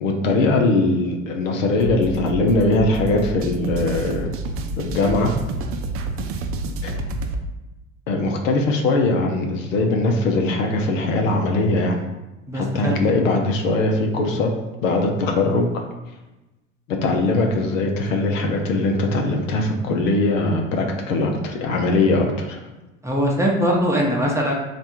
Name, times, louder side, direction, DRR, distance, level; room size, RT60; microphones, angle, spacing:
voice 1, 0.0-4.3 4.8-5.3 6.8-7.0 8.1-12.0 12.5-14.5 14.8-15.8 16.9-22.6, left 2 dB, 75° left, 2 dB, 0.7 m, -21 dB
sound 1, 1.8-7.4, right 2 dB, 35° right, 0.5 m, -29 dB
voice 2, 12.5-13.0 23.0-24.5, equal, 5° right, -2 dB, 0.8 m, -21 dB
3.3 x 2.5 x 4.4 m, 1.0 s
figure-of-eight pair, 70°, 39 cm